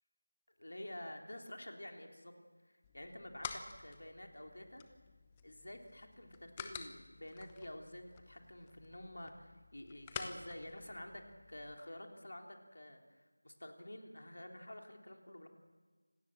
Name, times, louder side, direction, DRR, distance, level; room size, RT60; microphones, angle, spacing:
voice 1, 0.6-2.3 2.6-4.8 5.4-11.2 11.5-13.0 13.4-15.5, left 1 dB, 60° left, 3 dB, 3.5 m, -49 dB
sound 1, 2.8-11.7, left 6 dB, 10° left, 0.8 m, -51 dB
26.5 x 18.5 x 7.7 m, 1.4 s
figure-of-eight pair, 170°, 0 cm